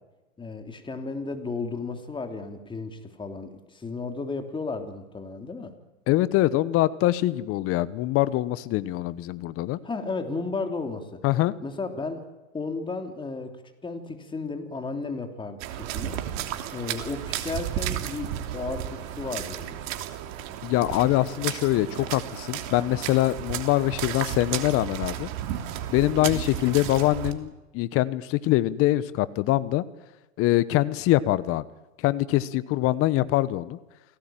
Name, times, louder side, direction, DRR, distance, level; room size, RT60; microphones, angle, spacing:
voice 1, 0.4-5.7 9.8-11.2 11.6-12.2 12.5-16.2 16.7-19.8 26.2-26.5, left 3 dB, 10° left, 6 dB, 3.2 m, -34 dB
voice 2, 6.1-9.8 11.2-11.5 20.6-25.3 25.9-29.8 30.4-31.6 32.0-33.8, left 16 dB, 35° left, 17 dB, 1.1 m, -24 dB
sound 1, 15.6-27.3, right 11 dB, 40° right, 3.1 m, -33 dB
28.5 x 18.0 x 9.2 m, 1.1 s
hypercardioid pair, 115°, 40 cm